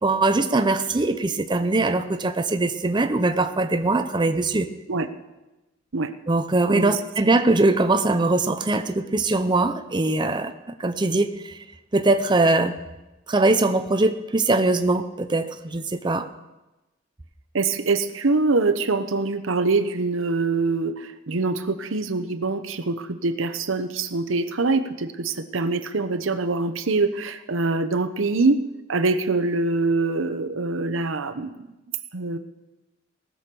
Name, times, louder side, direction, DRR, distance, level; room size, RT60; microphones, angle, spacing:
voice 1, 0.0-4.7 6.3-10.5 10.8-11.6 11.9-12.7 13.3-16.3, right 2 dB, 25° right, 8 dB, 0.6 m, -21 dB
voice 2, 17.5-28.6 28.9-31.7 32.1-32.4, right 3 dB, 85° right, 10 dB, 0.9 m, -24 dB
18.5 x 6.3 x 6.9 m, 1.0 s
head